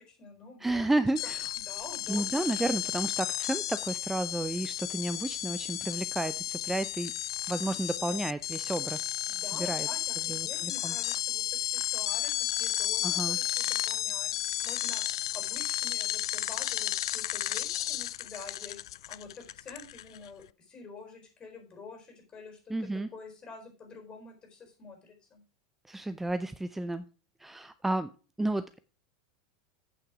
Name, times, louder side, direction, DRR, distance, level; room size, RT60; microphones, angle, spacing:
voice 1, 0.0-0.9 1.2-2.7 9.3-15.0 15.3-18.8 19.1-25.4, left 4 dB, 30° left, 3 dB, 4.5 m, -48 dB
voice 2, 0.6-1.5 2.1-7.1 7.5-9.1 9.5-9.9 10.3-11.0 13.0-13.4 22.7-23.1 25.9-27.1 27.4-28.1 28.4-28.8, right 2 dB, 10° right, 12 dB, 0.5 m, -32 dB
sound 1, 1.2-20.3, left 13 dB, 70° left, 0.3 m, -33 dB
8.5 x 6.6 x 4.9 m, 0.35 s
hypercardioid pair, 85°, 3 cm